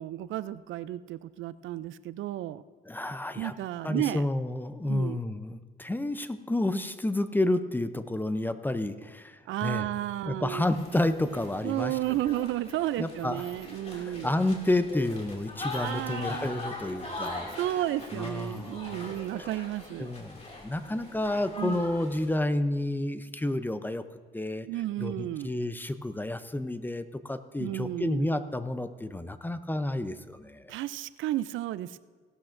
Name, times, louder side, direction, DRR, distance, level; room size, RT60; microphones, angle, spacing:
voice 1, 0.0-2.6 3.4-4.2 4.8-5.2 9.5-10.6 11.6-14.3 15.7-16.5 17.6-20.1 21.6-21.8 24.7-25.5 27.6-28.3 30.7-32.0, right 14 dB, 75° right, 16 dB, 0.4 m, -32 dB
voice 2, 2.9-3.5 3.8-9.9 10.2-12.2 13.0-13.4 13.9-17.5 18.1-19.1 20.0-24.0 24.3-24.7 25.0-30.7, left 1 dB, 10° left, 11 dB, 0.5 m, -30 dB
sound 1, 10.6-22.4, left 2 dB, 30° left, 2.4 m, -41 dB
17.0 x 12.0 x 2.6 m, 1.4 s
cardioid pair, 90°, 20 cm